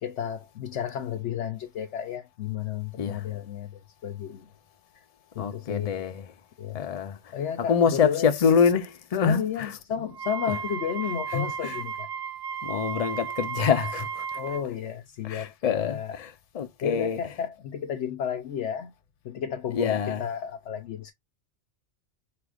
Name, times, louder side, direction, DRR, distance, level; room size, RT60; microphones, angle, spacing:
voice 1, 0.0-4.5 5.3-6.1 6.6-6.8 7.3-8.3 9.2-12.1 14.3-16.2 16.8-18.9 19.2-21.1, left 8 dB, 75° left, 1.0 m, -32 dB
voice 2, 5.4-6.3 6.7-7.3 7.7-9.7 11.3-11.7 12.6-14.4 15.2-17.2 19.7-20.3, left 6 dB, 40° left, 0.6 m, -26 dB
Wind instrument woodwind instrument, 10.1-14.6, right 6 dB, 65° right, 0.9 m, -34 dB
4.8 x 3.4 x 2.3 m
omnidirectional pair, 1.2 m